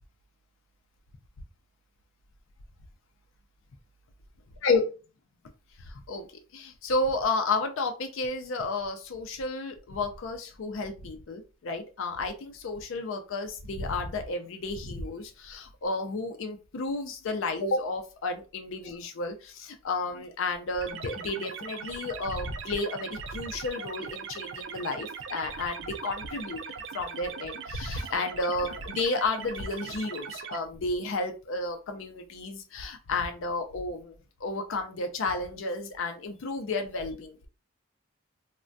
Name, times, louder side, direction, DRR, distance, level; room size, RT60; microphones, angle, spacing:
voice 1, 5.8-6.2 6.5-26.6 26.9-34.2 34.4-37.5, left 3 dB, 75° left, 6 dB, 0.4 m, -32 dB
sound 1, 20.8-30.6, right 6 dB, 65° right, 0.4 m, -40 dB
3.2 x 2.1 x 2.5 m, 0.34 s
head